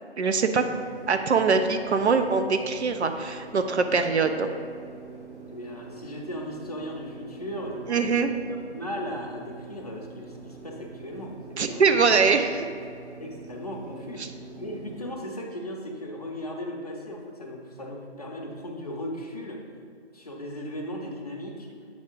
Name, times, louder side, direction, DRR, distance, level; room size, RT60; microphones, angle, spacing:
voice 1, 0.2-0.6 1.1-4.5 7.9-8.3 11.6-12.7, right 5 dB, 70° right, 7 dB, 0.5 m, -23 dB
sound 1, 0.6-15.1, right 4 dB, 90° right, 1.2 m, -45 dB
voice 2, 5.5-12.0 13.2-19.6 20.1-21.7, equal, 35° left, -1 dB, 0.6 m, -37 dB
7.6 x 3.6 x 3.7 m, 2.4 s
figure-of-eight pair, 170°, 34 cm